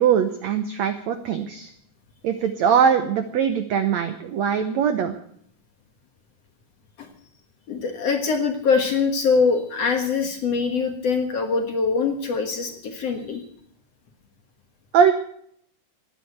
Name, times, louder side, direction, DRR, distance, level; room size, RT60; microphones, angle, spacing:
voice 1, 0.0-1.7 2.2-5.2 14.9-15.1, right 7 dB, 85° right, 9 dB, 1.5 m, -21 dB
voice 2, 7.7-13.4, left 5 dB, 55° left, 4 dB, 2.0 m, -23 dB
17.0 x 10.0 x 8.0 m, 0.68 s
omnidirectional pair, 4.4 m